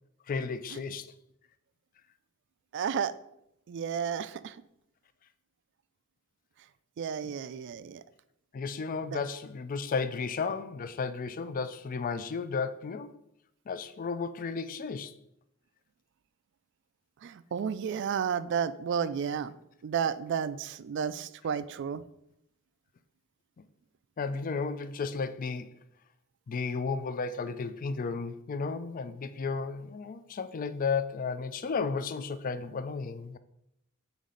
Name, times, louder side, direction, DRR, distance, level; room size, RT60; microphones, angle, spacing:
voice 1, 0.3-1.1 7.2-7.3 8.5-13.1 13.7-15.1 24.2-25.7 26.5-33.4, left 5 dB, 40° left, 0.3 m, -33 dB
voice 2, 2.7-3.1 3.7-4.5 7.0-8.0 9.0-9.2 17.2-19.5 19.8-22.0, right 7 dB, 55° right, 0.3 m, -32 dB
7.1 x 4.1 x 3.8 m
head